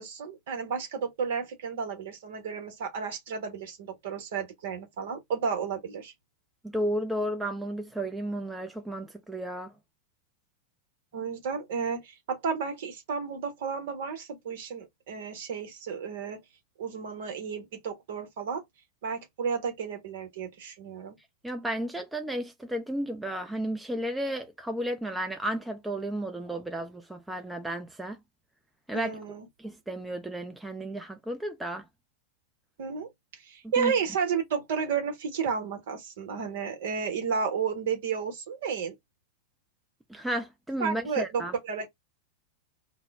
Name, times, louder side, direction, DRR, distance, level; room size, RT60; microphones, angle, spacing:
voice 1, 0.0-6.1 11.1-16.4 16.8-18.6 19.0-21.2 28.9-29.5 32.8-33.1 33.4-38.9 40.8-41.9, right 6 dB, 55° right, 0.9 m, -32 dB
voice 2, 6.6-9.7 21.4-28.2 28.9-29.2 29.6-31.8 33.6-33.9 40.1-41.5, right 1 dB, 5° right, 0.5 m, -33 dB
2.1 x 2.0 x 3.4 m
figure-of-eight pair, 90°, 0 cm